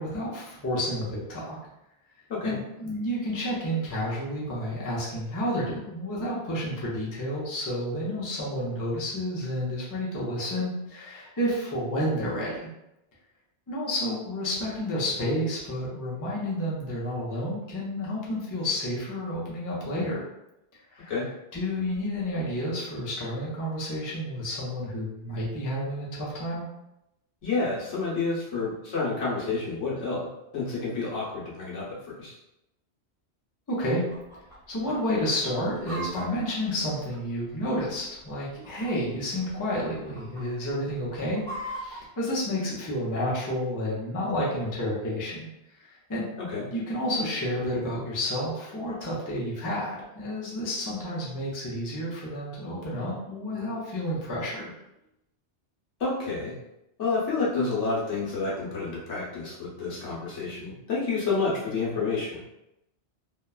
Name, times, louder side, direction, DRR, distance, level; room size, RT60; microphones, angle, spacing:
voice 1, 0.0-1.6 2.4-12.6 13.7-20.2 20.9-21.1 21.5-26.7 33.7-34.0 34.7-45.5 45.8-46.2 46.7-54.7, equal, 25° left, -6 dB, 0.5 m, -30 dB
voice 2, 27.4-30.3 30.5-31.9 32.2-32.3 46.4-46.6 56.0-56.5 57.0-62.4, left 4 dB, 85° left, -6 dB, 1.2 m, -29 dB
Chicken rooster, 34.1-34.6 34.8-34.9 35.4-37.6 38.3-39.1 39.4-39.7 39.9-40.4 40.9-42.0, right 1 dB, 45° left, 1.4 m, -39 dB
3.0 x 2.1 x 2.3 m, 0.87 s
omnidirectional pair, 1.2 m